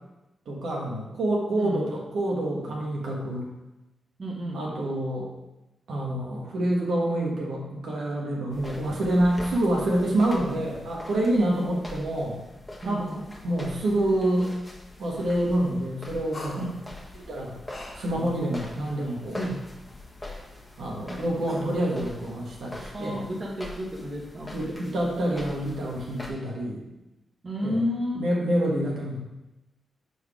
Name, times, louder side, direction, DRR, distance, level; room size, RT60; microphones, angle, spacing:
voice 1, 0.4-3.5 4.5-5.3 5.9-12.4 12.8-14.5 15.0-16.7 17.1-17.5 17.9-19.5 20.8-23.2 24.5-26.8 27.6-27.8 28.2-29.2, right 1 dB, 80° right, -3 dB, 1.5 m, -27 dB
voice 2, 4.2-4.6 11.3-11.7 12.8-13.1 16.6-16.8 22.9-24.5 27.4-28.2, left 1 dB, 45° right, -2 dB, 1.4 m, -31 dB
sound 1, 8.5-26.3, left 2 dB, 15° left, 1.3 m, -44 dB
sound 2, 16.3-21.8, equal, 50° left, 1.4 m, -41 dB
5.4 x 4.6 x 4.9 m, 0.99 s
cardioid pair, 75°, 0 cm